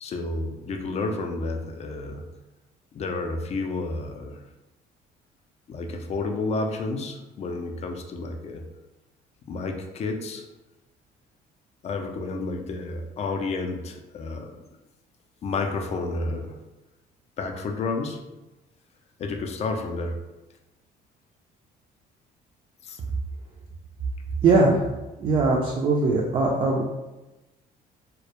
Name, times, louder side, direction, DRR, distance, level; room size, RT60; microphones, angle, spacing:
voice 1, 0.0-2.2 2.9-4.4 5.7-8.6 9.5-10.4 11.8-14.6 15.4-16.6 17.4-18.2 19.2-20.2 22.8-23.0, left 3 dB, 40° left, 4 dB, 0.4 m, -30 dB
voice 2, 24.4-24.8 25.2-26.9, right 3 dB, 35° right, -2 dB, 0.4 m, -20 dB
2.1 x 2.0 x 2.9 m, 1.0 s
cardioid pair, 110°, 17 cm